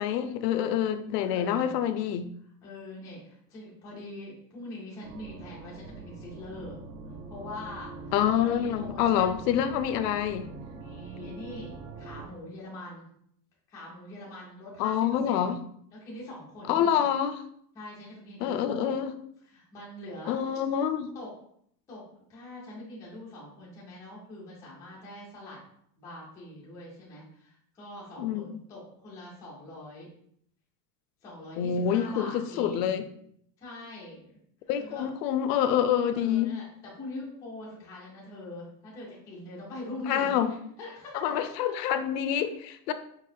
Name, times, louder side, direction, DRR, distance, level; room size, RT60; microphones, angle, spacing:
voice 1, 0.0-2.3 8.1-10.5 14.8-15.5 16.7-17.4 18.4-19.1 20.3-21.1 28.2-28.5 31.6-33.0 34.7-36.5 40.1-40.5 41.1-42.9, left 9 dB, 75° left, 10 dB, 0.6 m, -27 dB
voice 2, 1.2-1.8 2.4-6.8 7.1-9.5 10.8-13.1 13.7-15.6 15.9-17.1 17.7-18.9 19.4-20.4 21.1-21.3 21.9-25.6 26.0-30.1 31.2-33.1 33.6-34.4 34.8-35.1 36.0-41.6, left 1 dB, 5° left, -6 dB, 0.4 m, -43 dB
sound 1, 5.0-12.3, right 3 dB, 60° right, 0.9 m, -43 dB
4.6 x 4.0 x 2.6 m, 0.68 s
supercardioid pair, 170°, 49 cm